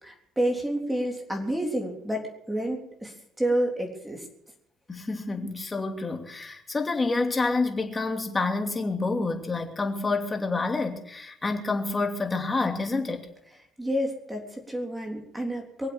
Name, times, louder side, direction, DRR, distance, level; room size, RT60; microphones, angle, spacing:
voice 1, 0.0-4.3 13.8-15.9, right 1 dB, 10° right, 3.6 m, -29 dB
voice 2, 4.9-13.2, left 3 dB, 20° left, 2.8 m, -28 dB
23.5 x 8.0 x 7.2 m
cardioid pair, 105°, 0 cm